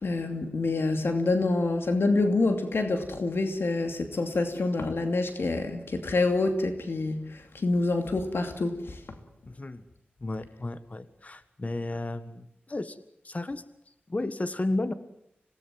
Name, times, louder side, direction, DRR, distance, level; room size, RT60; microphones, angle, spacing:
voice 1, 0.0-9.0, left 3 dB, 80° left, 6 dB, 2.6 m, -27 dB
voice 2, 9.5-9.8 10.2-13.0 13.2-13.6 14.1-14.9, left 2 dB, 40° left, 12 dB, 1.5 m, -33 dB
26.5 x 18.0 x 7.7 m, 0.78 s
wide cardioid pair, 80°, 4 cm